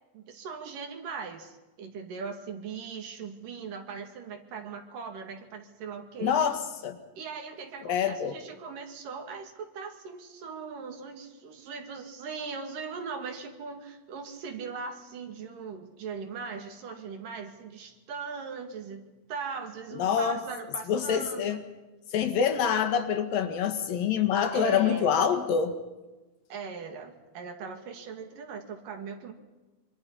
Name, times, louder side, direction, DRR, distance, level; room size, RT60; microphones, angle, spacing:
voice 1, 0.1-6.4 7.2-21.6 24.5-25.3 26.5-29.3, right 5 dB, 65° right, 5 dB, 3.7 m, -39 dB
voice 2, 6.2-7.0 7.8-8.3 20.0-20.4 20.9-21.6 22.1-25.7, left 7 dB, 75° left, 7 dB, 3.4 m, -26 dB
25.5 x 25.0 x 5.5 m, 1.1 s
omnidirectional pair, 4.1 m